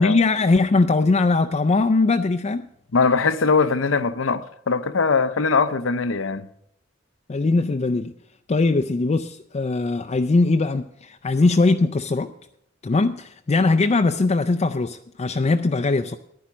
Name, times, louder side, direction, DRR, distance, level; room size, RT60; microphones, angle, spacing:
voice 1, 0.0-2.7 7.3-8.1 8.5-12.3 12.8-16.2, left 3 dB, 35° left, 0.4 m, -20 dB
voice 2, 2.9-6.5, left 4 dB, 85° left, 0.7 m, -21 dB
10.5 x 10.0 x 6.1 m
head